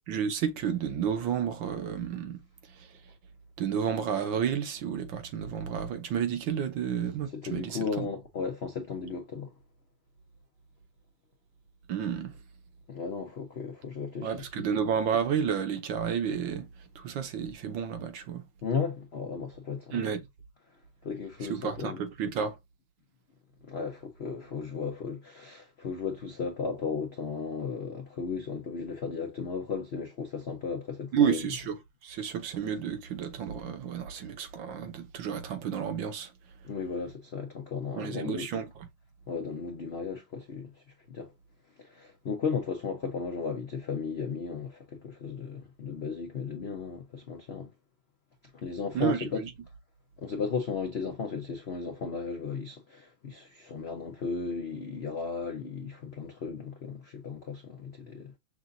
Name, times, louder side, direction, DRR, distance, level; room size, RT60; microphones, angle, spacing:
voice 1, 0.1-2.4 2.8-2.9 3.6-8.1 11.9-12.3 14.2-16.7 16.9-18.4 19.9-20.3 21.5-22.6 31.1-31.8 32.0-36.3 38.0-38.7 48.9-49.5, right 7 dB, 70° right, 1.5 m, -31 dB
voice 2, 7.3-9.5 12.9-14.5 18.6-20.0 21.0-22.0 23.7-31.5 36.6-38.5 39.3-40.7 41.1-41.3 41.8-47.7 48.5-49.4 50.2-58.3, left 5 dB, 85° left, 0.5 m, -35 dB
6.0 x 2.6 x 2.5 m
omnidirectional pair, 2.2 m